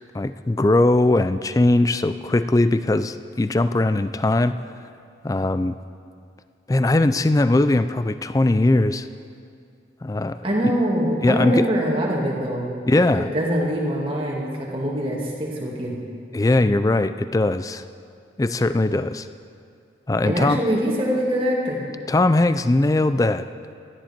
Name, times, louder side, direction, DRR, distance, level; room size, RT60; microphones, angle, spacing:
voice 1, 0.1-4.6 5.2-5.8 6.7-9.1 10.0-10.4 11.2-11.7 12.9-13.3 16.3-17.8 18.4-19.3 20.1-20.6 22.1-23.5, left 2 dB, 20° left, 12 dB, 0.3 m, -20 dB
voice 2, 10.4-15.9 20.2-21.8, equal, 30° right, -3 dB, 2.2 m, -24 dB
17.5 x 13.0 x 4.4 m, 2.4 s
head